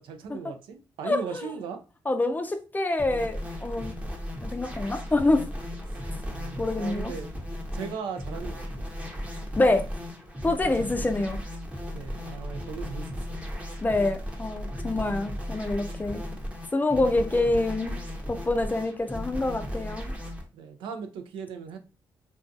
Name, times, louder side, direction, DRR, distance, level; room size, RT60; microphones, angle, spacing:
voice 1, 0.0-1.8 6.2-7.3 7.7-8.8 10.6-10.9 11.9-13.1 14.9-15.1 20.5-21.8, right 6 dB, 90° right, 0.4 m, -38 dB
voice 2, 1.0-1.5 2.1-3.9 4.4-5.5 6.6-7.1 9.6-9.9 10.4-11.4 13.8-16.2 16.7-18.0 18.3-20.1, left 2 dB, 20° left, 0.4 m, -26 dB
sound 1, 3.0-20.4, equal, 15° right, 0.7 m, -36 dB
2.5 x 2.3 x 2.5 m
cardioid pair, 70°, 8 cm